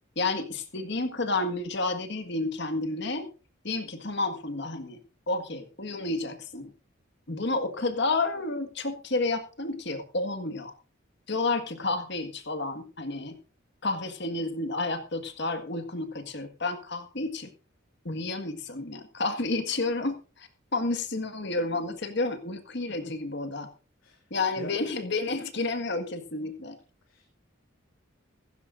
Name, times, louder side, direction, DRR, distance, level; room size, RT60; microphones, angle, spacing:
voice 1, 0.2-3.3 3.6-5.0 5.3-6.7 7.3-10.7 11.3-13.4 13.8-17.5 18.1-23.7 24.3-26.8, left 3 dB, 55° left, 8 dB, 1.8 m, -30 dB
voice 2, 23.0-23.1 24.0-24.2 24.5-24.8 27.1-27.3, left 1 dB, 75° left, 0 dB, 2.5 m, -44 dB
16.0 x 15.0 x 2.6 m, 0.35 s
head